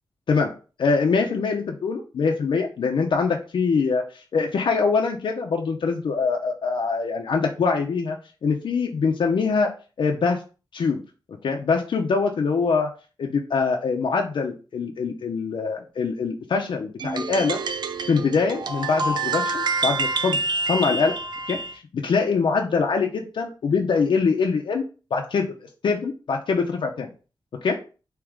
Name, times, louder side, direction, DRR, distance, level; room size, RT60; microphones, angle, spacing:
voice 1, 0.8-9.7 10.0-10.4 10.7-11.0 11.4-12.9 13.2-17.6 18.1-20.4 20.6-21.1 21.5-24.8 25.1-25.5 25.8-27.1 27.6-27.8, left 5 dB, 90° left, 1 dB, 0.7 m, -23 dB
sound 1, 17.0-21.7, right 3 dB, 65° right, 0.5 m, -27 dB
4.6 x 3.0 x 3.6 m, 0.34 s
wide cardioid pair, 170°, 8 cm